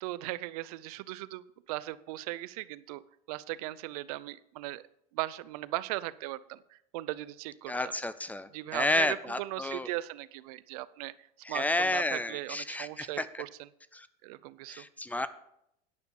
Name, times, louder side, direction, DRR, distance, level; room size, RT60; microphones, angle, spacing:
voice 1, 0.0-3.0 3.3-4.8 5.1-7.9 8.5-13.7 14.2-14.8, right 17 dB, 85° right, 17 dB, 0.5 m, -38 dB
voice 2, 7.7-9.9 11.4-13.4 13.9-14.1 14.7-15.3, left 2 dB, 10° left, 14 dB, 0.4 m, -31 dB
9.6 x 5.9 x 6.9 m, 0.77 s
supercardioid pair, 135°, 19 cm